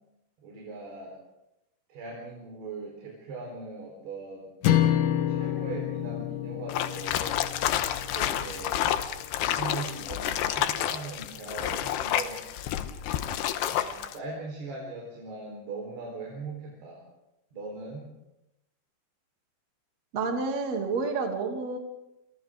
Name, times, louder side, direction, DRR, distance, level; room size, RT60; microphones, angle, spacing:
voice 1, 0.4-1.2 1.9-4.5 5.3-7.5 8.1-8.9 9.3-12.4 13.7-17.0 17.5-18.1, right 3 dB, 75° right, -1 dB, 6.3 m, -40 dB
sound 1, 4.6-9.0, left 11 dB, 65° left, 2.6 m, -28 dB
sound 2, 6.7-14.2, left 11 dB, 85° left, 3.1 m, -29 dB
voice 2, 20.1-21.8, right 4 dB, 45° right, 2 dB, 3.7 m, -29 dB
29.0 x 26.5 x 3.8 m, 0.90 s
omnidirectional pair, 4.7 m